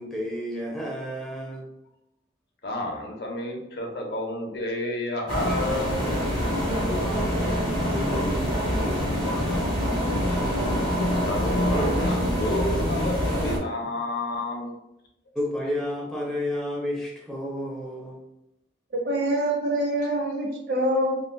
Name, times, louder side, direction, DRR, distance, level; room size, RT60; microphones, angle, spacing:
voice 1, 0.0-1.7 6.6-10.2 15.3-18.2, left 1 dB, ahead, -3 dB, 0.5 m, -32 dB
voice 2, 2.6-6.0 11.2-14.7, left 1 dB, 65° left, 1 dB, 0.6 m, -30 dB
sound 1, 5.3-13.6, equal, 30° right, 1.2 m, -25 dB
voice 3, 19.0-21.2, right 1 dB, 65° right, -3 dB, 0.9 m, -25 dB
3.5 x 2.2 x 2.2 m, 0.87 s
head